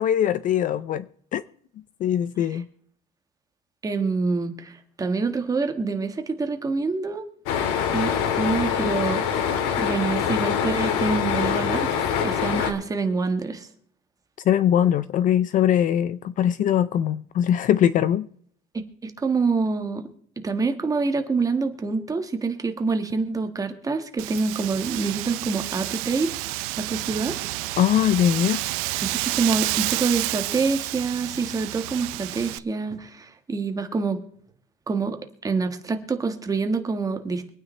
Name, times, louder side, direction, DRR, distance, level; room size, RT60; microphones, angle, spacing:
voice 1, 0.0-1.4 2.0-2.7 14.4-18.3 27.8-28.6, left 10 dB, 40° left, 0.5 m, -21 dB
voice 2, 3.8-7.2 7.9-9.2 9.8-13.7 19.0-20.1 20.4-26.5 26.8-27.4 29.0-34.2 34.9-37.5, right 4 dB, 15° right, 1.5 m, -26 dB
sound 1, 7.5-12.7, left 8 dB, 90° left, 2.2 m, -24 dB
Wind, 24.2-32.6, right 20 dB, 90° right, 0.6 m, -30 dB
24.5 x 9.4 x 3.3 m
cardioid pair, 160°, 21 cm